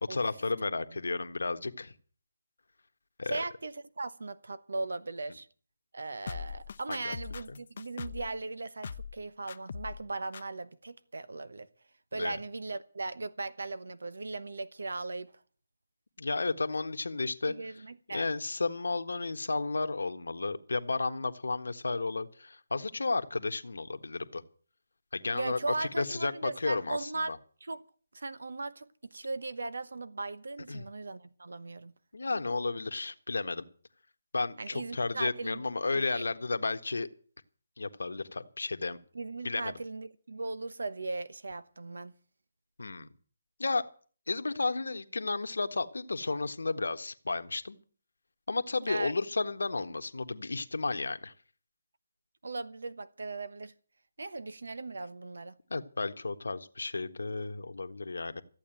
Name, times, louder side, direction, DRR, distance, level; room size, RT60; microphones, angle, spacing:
voice 1, 0.0-1.9 3.2-3.4 6.9-7.1 7.5-7.6 12.2-12.4 16.2-17.5 18.1-24.4 25.1-27.4 30.7-30.8 32.1-33.6 34.3-37.1 37.8-39.0 39.4-39.8 42.8-43.1 43.6-43.8 44.3-47.8 48.5-51.3 55.7-58.4, left 3 dB, 85° left, 1.4 m, -33 dB
voice 2, 3.3-5.5 5.9-11.7 12.1-15.3 17.5-18.3 25.3-27.3 27.6-27.8 28.1-31.9 34.6-35.6 35.9-36.3 39.1-42.1 48.9-49.1 52.4-53.7 54.2-55.5, right 3 dB, 80° right, 1.1 m, -38 dB
sound 1, 6.3-8.3 8.8-9.2 9.5-10.0 10.3-10.4, left 6 dB, 50° left, 0.7 m, -41 dB
14.5 x 8.6 x 9.1 m
hypercardioid pair, 165°, 0 cm